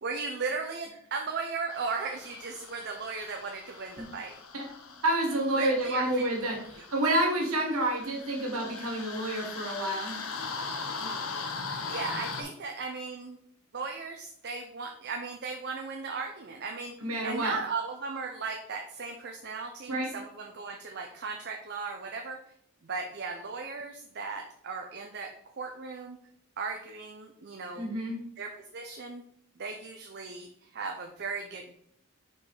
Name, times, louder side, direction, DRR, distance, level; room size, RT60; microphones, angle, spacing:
voice 1, 0.0-4.4 5.5-6.2 10.9-11.3 11.9-13.4 13.7-16.9 17.2-22.5 22.8-26.2 26.6-27.9 28.4-29.2 29.6-31.7, right 4 dB, 50° right, 3 dB, 0.6 m, -37 dB
sound 1, 1.7-12.4, left 4 dB, 80° left, 1.0 m, -40 dB
voice 2, 5.0-10.2 11.8-11.9 17.0-17.5 19.9-20.1 27.7-28.2, right 1 dB, 90° right, 1 dB, 1.6 m, -29 dB
5.4 x 4.6 x 4.8 m, 0.67 s
head